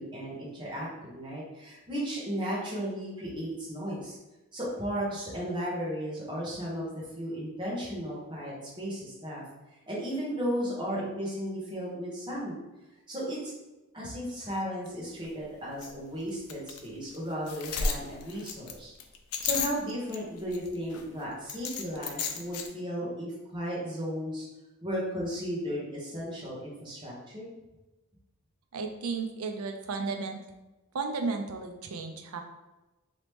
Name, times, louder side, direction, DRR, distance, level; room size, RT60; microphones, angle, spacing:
voice 1, 0.0-4.2 4.5-6.8 7.1-9.4 9.9-12.6 13.1-13.4 13.9-18.9 19.4-24.5 24.8-27.5, equal, 20° right, -6 dB, 1.0 m, -35 dB
sound 1, 14.9-15.0 15.2-15.3 15.8-15.9 16.5-16.8 17.1-17.2 17.5-20.2 20.5-21.0 21.5-22.7, left 5 dB, 85° left, 0.4 m, -33 dB
voice 2, 28.7-30.4 30.9-32.4, right 4 dB, 75° right, 5 dB, 0.5 m, -33 dB
3.0 x 2.9 x 3.4 m, 1.0 s
head